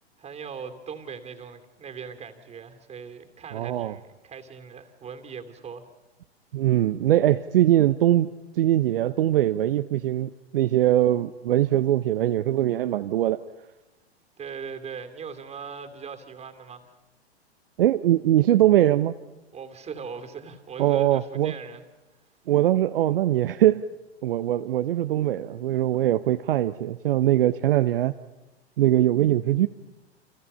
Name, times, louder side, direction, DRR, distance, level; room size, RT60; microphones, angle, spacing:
voice 1, 0.2-5.9 14.4-16.9 19.5-21.8, right 6 dB, 20° right, 7 dB, 2.8 m, -39 dB
voice 2, 3.5-4.0 6.5-8.3 8.6-13.4 17.8-19.1 20.8-21.5 22.5-23.8 24.2-28.1 28.8-29.7, right 13 dB, 60° right, 10 dB, 0.9 m, -22 dB
29.5 x 28.0 x 5.6 m, 1.0 s
figure-of-eight pair, 100°, 32 cm